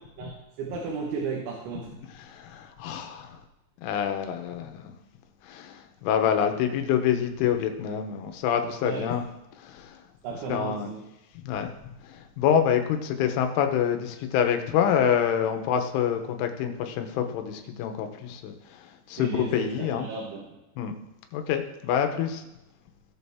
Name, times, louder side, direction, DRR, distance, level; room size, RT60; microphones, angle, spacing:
voice 1, 0.2-2.1 8.8-9.1 10.2-11.0 19.2-20.6, right 5 dB, 75° right, -1 dB, 3.6 m, -34 dB
voice 2, 2.0-3.4 3.8-5.0 5.4-9.2 9.6-10.0 10.5-10.9 11.3-11.7 12.0-20.1 20.8-20.9 21.3-22.4, left 8 dB, 80° left, 6 dB, 3.4 m, -27 dB
18.0 x 6.7 x 3.5 m, 0.91 s
omnidirectional pair, 5.5 m